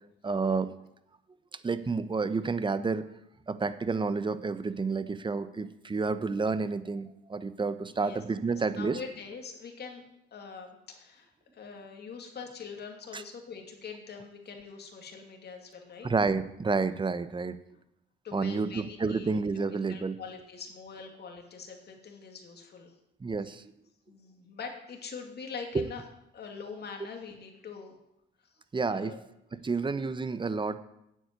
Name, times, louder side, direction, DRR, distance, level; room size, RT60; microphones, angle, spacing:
voice 1, 0.2-0.7 1.6-3.1 3.5-9.0 13.1-13.2 16.0-17.6 18.3-20.2 23.2-23.6 25.7-25.9 28.7-29.1 29.5-30.8, right 4 dB, 25° right, 13 dB, 0.9 m, -30 dB
voice 2, 8.5-10.0 10.3-16.1 18.2-19.3 19.9-22.9 24.1-26.0 26.3-27.9 28.9-29.2, left 5 dB, 55° left, 3 dB, 2.7 m, -43 dB
9.4 x 7.9 x 9.2 m, 0.82 s
cardioid pair, 90°, 20 cm